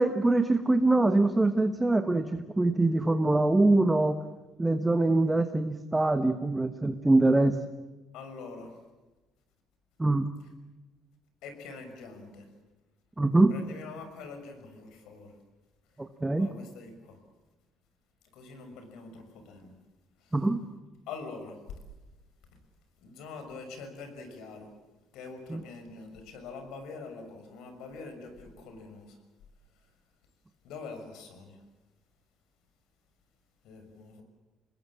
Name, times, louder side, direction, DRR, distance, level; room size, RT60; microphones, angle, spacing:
voice 1, 0.0-4.1 4.6-7.5 10.0-10.3 13.2-13.5 16.0-16.5 20.3-20.6 25.5-25.6, right 2 dB, 10° right, 8 dB, 1.2 m, -24 dB
voice 2, 8.1-8.7 11.4-12.5 13.5-15.3 16.4-17.2 18.3-19.7 20.2-20.4 21.1-21.6 22.4-22.5 23.0-24.7 25.1-29.2 30.6-31.6 33.6-34.2, left 4 dB, 75° left, 7 dB, 6.3 m, -44 dB
27.0 x 20.5 x 7.6 m, 1.2 s
cardioid pair, 130°, 0 cm